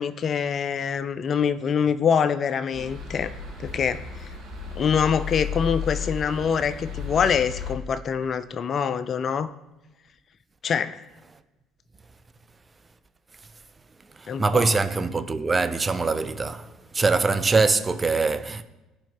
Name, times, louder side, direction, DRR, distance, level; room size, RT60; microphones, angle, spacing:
voice 1, 0.0-3.3 3.6-4.3 4.8-9.5 10.6-11.0 14.3-14.7, left 7 dB, 45° left, 0.4 m, -25 dB
sound 1, 2.7-7.7, left 6 dB, 65° right, 3.1 m, -34 dB
voice 2, 14.1-18.6, right 4 dB, 25° right, 0.7 m, -23 dB
14.5 x 5.0 x 3.6 m
hypercardioid pair, 55°, 0 cm